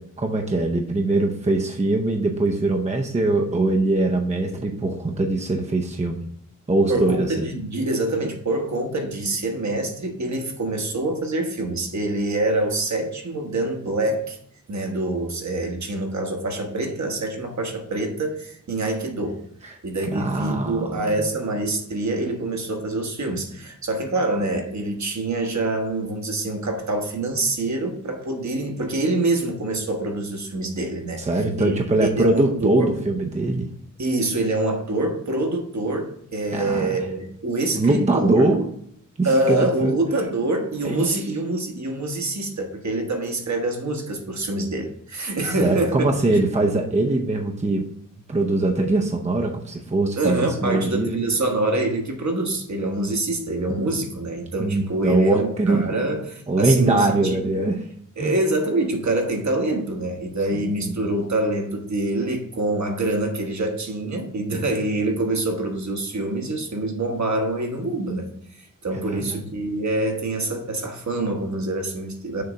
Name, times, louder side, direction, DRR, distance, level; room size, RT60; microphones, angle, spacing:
voice 1, 0.0-6.2 6.7-7.5 20.0-21.3 31.2-33.7 36.5-37.0 37.7-38.7 39.2-39.9 40.8-41.2 45.6-47.9 48.3-51.1 53.7-53.8 54.6-56.0 56.5-57.9 58.2-58.4 60.5-60.9 69.1-69.4, right 2 dB, 20° right, 2 dB, 0.6 m, -22 dB
voice 2, 6.9-14.4 14.7-19.4 19.8-31.2 31.5-32.9 34.0-38.5 39.2-46.4 50.2-57.1 58.2-68.3 68.5-72.4, right 2 dB, 55° right, 3 dB, 1.2 m, -25 dB
6.7 x 3.4 x 5.0 m, 0.72 s
wide cardioid pair, 130°, 33 cm